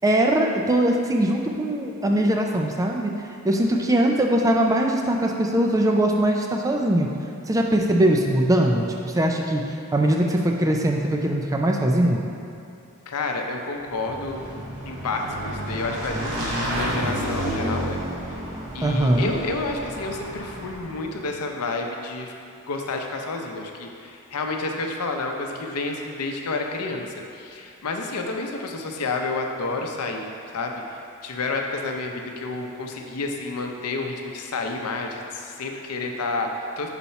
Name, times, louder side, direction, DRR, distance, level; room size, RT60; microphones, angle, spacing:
voice 1, 0.0-3.1 3.4-7.1 7.5-12.3 18.8-19.3, right 1 dB, 15° right, 1 dB, 0.3 m, -21 dB
voice 2, 13.1-14.4 14.9-18.0 18.3-18.4 18.7-22.3 22.7-36.9, left 3 dB, 85° left, 2 dB, 0.6 m, -30 dB
Motorcycle / Engine, 13.8-21.1, right 1 dB, 70° right, 1.4 m, -31 dB
4.2 x 4.1 x 5.6 m, 2.7 s
head